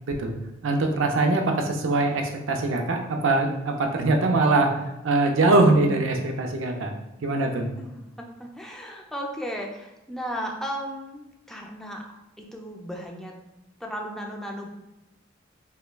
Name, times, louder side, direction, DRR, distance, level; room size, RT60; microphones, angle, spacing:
voice 1, 0.6-2.2 2.5-4.7 5.0-6.9 7.2-7.7, right 2 dB, 70° right, 3 dB, 0.5 m, -22 dB
voice 2, 7.8-12.0 12.4-13.3 13.8-14.7, equal, ahead, 0 dB, 0.4 m, -35 dB
5.5 x 2.1 x 2.2 m, 0.98 s
head